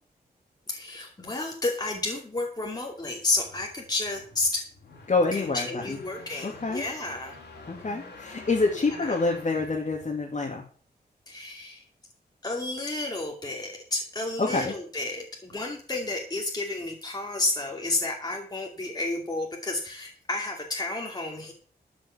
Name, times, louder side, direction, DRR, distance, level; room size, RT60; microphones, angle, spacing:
voice 1, 0.7-4.6 5.3-7.3 8.8-9.1 11.3-11.8 12.4-21.5, left 2 dB, 25° left, -1 dB, 2.7 m, -31 dB
sound 1, 3.0-10.6, left 3 dB, 90° left, 4.5 m, -47 dB
voice 2, 5.1-6.0 6.4-6.8 7.7-10.6 14.4-14.7, left 3 dB, 45° left, -1 dB, 2.8 m, -27 dB
12.5 x 6.2 x 7.2 m, 0.41 s
wide cardioid pair, 95°, 17 cm